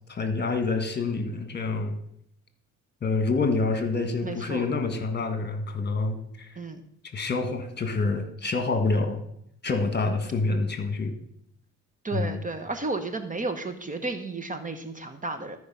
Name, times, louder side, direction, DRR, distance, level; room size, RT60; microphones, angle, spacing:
voice 1, 0.1-2.0 3.0-6.6 7.1-9.2 9.6-11.1 12.1-12.4, left 3 dB, 35° left, 7 dB, 1.5 m, -27 dB
voice 2, 4.2-4.7 6.6-6.8 12.0-15.6, right 3 dB, 25° right, 8 dB, 0.9 m, -32 dB
13.5 x 4.8 x 5.5 m, 0.74 s
cardioid pair, 90°, 30 cm